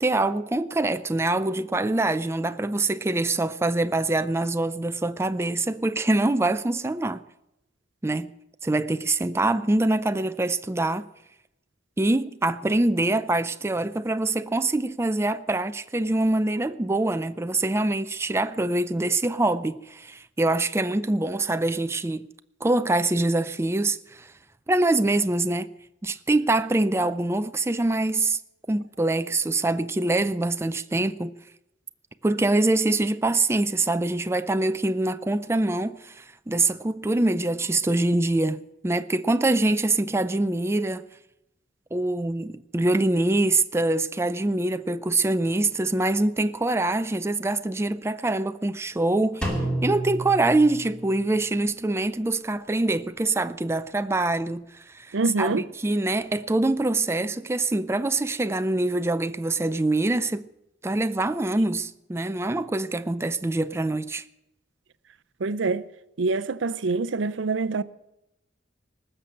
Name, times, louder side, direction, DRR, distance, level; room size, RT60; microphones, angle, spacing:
voice 1, 0.0-7.2 8.0-8.3 8.6-11.0 12.0-22.3 22.6-24.3 24.7-25.7 26.0-28.4 28.7-31.3 32.2-41.0 41.9-49.5 49.8-60.5 60.8-64.2, right 2 dB, 15° right, 0.4 m, -24 dB
Drum, 49.4-51.3, right 1 dB, 5° left, 2.8 m, -30 dB
voice 2, 55.1-55.6 65.4-65.8 66.2-67.8, right 3 dB, 80° right, 0.6 m, -25 dB
19.5 x 6.8 x 8.8 m
head